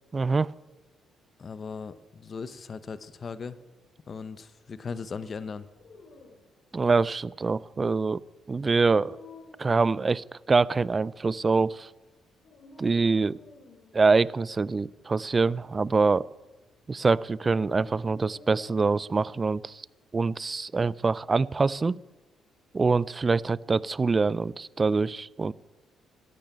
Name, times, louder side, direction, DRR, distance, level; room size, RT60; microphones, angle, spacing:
voice 1, 0.1-0.5 6.7-8.2 8.5-9.2 9.6-11.9 12.8-13.4 13.9-16.3 16.9-19.8 20.1-22.0 22.7-25.5, right 4 dB, 30° right, 22 dB, 0.4 m, -25 dB
voice 2, 1.4-3.6 4.1-5.7, left 5 dB, 40° left, 14 dB, 0.9 m, -38 dB
Dog, 5.6-19.3, left 3 dB, 60° left, 2.7 m, -54 dB
13.5 x 12.0 x 8.9 m, 1.2 s
cardioid pair, 90°, 0 cm